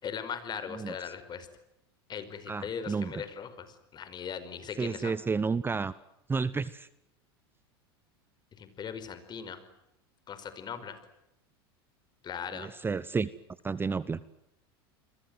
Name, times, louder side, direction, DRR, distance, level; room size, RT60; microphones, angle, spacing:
voice 1, 0.0-1.5 2.1-5.1 8.6-9.6 10.3-11.0 12.2-12.7, left 7 dB, 35° left, 12 dB, 5.1 m, -39 dB
voice 2, 2.5-3.2 4.8-5.9 6.3-6.9 12.5-13.3 13.6-14.2, right 4 dB, 15° right, 17 dB, 0.9 m, -31 dB
29.5 x 22.5 x 7.9 m, 0.86 s
hypercardioid pair, 95°, 13 cm